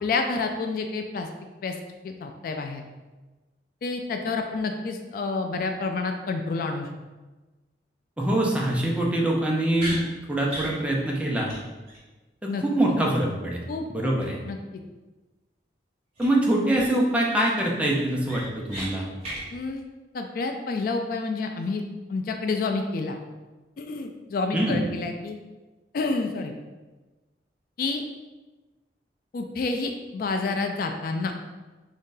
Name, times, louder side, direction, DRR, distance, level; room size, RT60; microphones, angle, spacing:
voice 1, 0.0-1.3 1.6-1.8 2.0-2.8 3.8-6.9 12.5-12.9 13.7-14.1 14.4-14.8 19.5-19.8 20.1-21.8 22.1-23.2 23.8-25.4 25.9-26.5 27.8-28.0 29.3-31.3, left 3 dB, 55° left, 4 dB, 0.3 m, -29 dB
voice 2, 8.2-11.5 12.6-13.6 13.9-14.4 16.2-19.1 24.5-24.8, right 1 dB, 5° right, -2 dB, 0.5 m, -24 dB
sound 1, 9.8-10.0 10.5-10.7 11.1-11.2 11.5-11.6 11.9-12.0 16.2-16.3 16.7-17.1 17.5-17.6 18.0-18.9 19.2-19.4, right 1 dB, 35° right, 1.5 m, -35 dB
3.6 x 2.7 x 3.7 m, 1.2 s
head